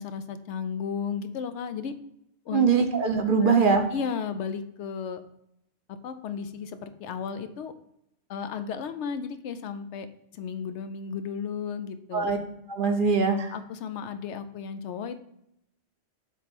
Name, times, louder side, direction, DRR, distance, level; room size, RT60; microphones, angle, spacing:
voice 1, 0.0-1.9 2.5-2.7 3.4-3.7 3.9-5.2 6.0-7.7 8.3-10.1 10.3-12.3 13.5-15.2, left 6 dB, 75° left, 10 dB, 0.9 m, -34 dB
voice 2, 2.5-3.8 12.1-12.4 12.7-13.5, right 5 dB, 50° right, 5 dB, 0.8 m, -22 dB
7.3 x 3.0 x 5.2 m, 0.77 s
omnidirectional pair, 1.2 m